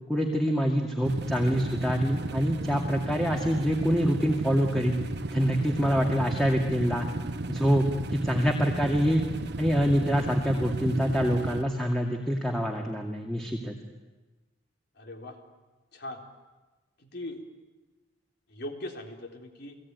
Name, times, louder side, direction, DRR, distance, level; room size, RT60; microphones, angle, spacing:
voice 1, 0.1-5.0 5.3-7.1 7.5-7.9 8.1-9.2 9.6-13.7, equal, ahead, 1 dB, 2.2 m, -25 dB
sound 1, 1.0-11.6, right 2 dB, 60° right, 1.3 m, -34 dB
voice 2, 15.0-15.4 15.9-16.2 17.0-17.4 18.5-19.8, left 1 dB, 60° left, 3 dB, 3.7 m, -39 dB
30.0 x 19.5 x 9.6 m, 1.2 s
head